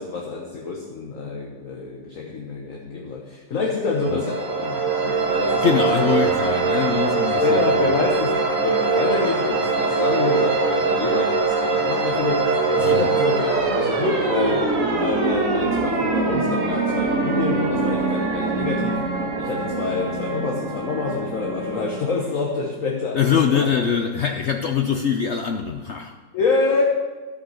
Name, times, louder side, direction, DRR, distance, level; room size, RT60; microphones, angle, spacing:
voice 1, 0.0-5.8 7.2-14.6 15.0-19.0 19.4-23.7 26.3-26.8, left 4 dB, 50° left, -1 dB, 1.5 m, -27 dB
sound 1, 3.9-22.5, right 4 dB, 50° right, 1.6 m, -23 dB
voice 2, 5.6-8.0 12.8-13.1 23.1-26.1, left 7 dB, 75° left, 5 dB, 0.6 m, -23 dB
12.0 x 5.9 x 6.4 m, 1.3 s
omnidirectional pair, 1.9 m